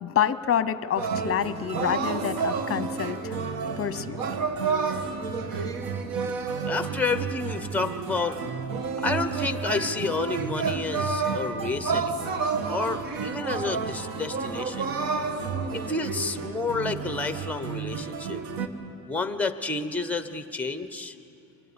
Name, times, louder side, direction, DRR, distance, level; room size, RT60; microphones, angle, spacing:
voice 1, 0.0-3.3 3.8-4.2, left 9 dB, 40° left, 14 dB, 0.9 m, -27 dB
sound 1, 1.0-18.7, right 5 dB, 75° right, 1.5 m, -30 dB
voice 2, 6.7-8.4 9.0-14.9 15.7-18.4 19.1-21.2, left 3 dB, 5° left, 10 dB, 1.0 m, -30 dB
24.5 x 18.0 x 9.7 m, 2.9 s
cardioid pair, 120°, 35 cm